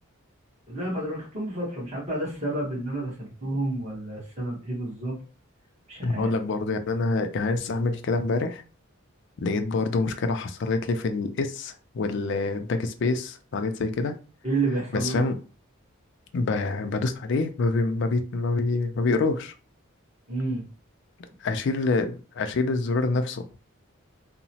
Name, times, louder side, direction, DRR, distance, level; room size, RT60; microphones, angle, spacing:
voice 1, 0.7-5.1 5.9-6.3 14.4-15.3 20.3-20.6, right 2 dB, 30° right, -4 dB, 1.1 m, -30 dB
voice 2, 6.0-8.6 9.4-14.2 14.9-15.4 16.3-19.5 21.4-23.4, left 3 dB, 55° left, 8 dB, 0.4 m, -26 dB
2.9 x 2.0 x 2.7 m, 0.36 s
head